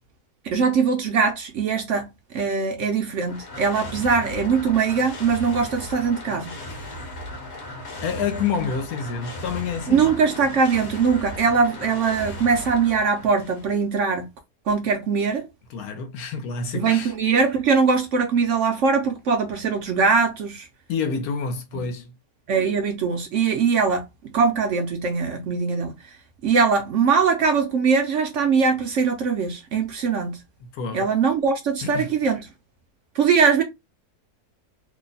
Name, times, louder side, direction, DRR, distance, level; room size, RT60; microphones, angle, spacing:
voice 1, 0.4-2.1 2.3-6.5 9.9-14.3 14.7-15.5 16.7-20.7 21.7-21.9 22.5-24.0 24.3-25.9 26.4-30.4 30.9-32.4 33.1-33.6, right 5 dB, 65° right, 0.8 m, -21 dB
sound 1, 3.0-13.9, left 1 dB, 50° left, 1.1 m, -37 dB
voice 2, 8.0-10.1 15.7-17.1 20.9-22.1 30.6-31.1 31.8-32.1, left 5 dB, 75° left, 1.2 m, -28 dB
2.9 x 2.1 x 3.9 m
omnidirectional pair, 1.7 m